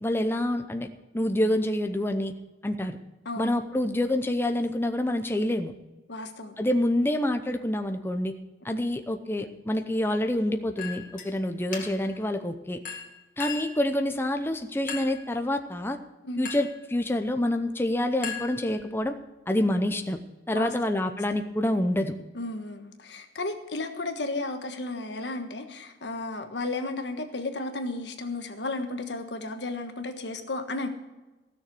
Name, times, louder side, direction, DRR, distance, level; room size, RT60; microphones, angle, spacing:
voice 1, 0.0-0.9 1.1-2.3 2.6-3.0 3.4-5.7 6.6-8.3 8.6-12.8 13.4-16.0 16.4-19.2 19.5-20.2 20.5-22.1, left 1 dB, 15° left, 6 dB, 0.6 m, -27 dB
voice 2, 3.2-3.6 6.1-6.5 8.7-8.8 16.2-16.4 20.5-21.0 22.3-30.9, left 2 dB, 75° left, 6 dB, 1.4 m, -34 dB
Chink clink, 10.8-11.3 11.7-12.2 12.8-13.8 14.9-15.3 16.4-16.8 18.2-19.0, left 6 dB, 50° left, 2.2 m, -37 dB
15.5 x 6.7 x 7.7 m, 1.1 s
head